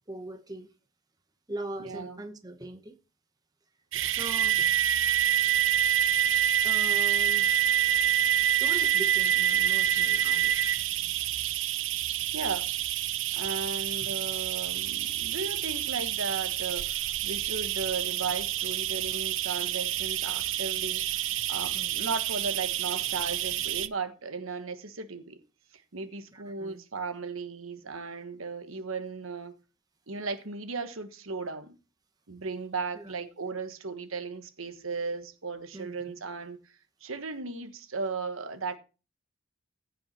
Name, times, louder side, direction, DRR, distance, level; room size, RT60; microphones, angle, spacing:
voice 1, 0.1-0.7 1.5-3.0 3.9-4.7 6.6-7.5 8.5-10.6 21.7-21.9 26.3-26.8 32.9-33.1 35.7-36.2, right 1 dB, 20° right, 0.9 m, -41 dB
voice 2, 1.8-2.2 12.3-12.7 13.3-21.1 21.5-25.4 25.7-29.5 30.1-31.8 32.3-36.6 37.0-38.8, right 4 dB, 80° right, 1.4 m, -36 dB
sound 1, 3.9-23.9, right 11 dB, 65° right, 0.6 m, -27 dB
15.5 x 5.7 x 4.3 m
head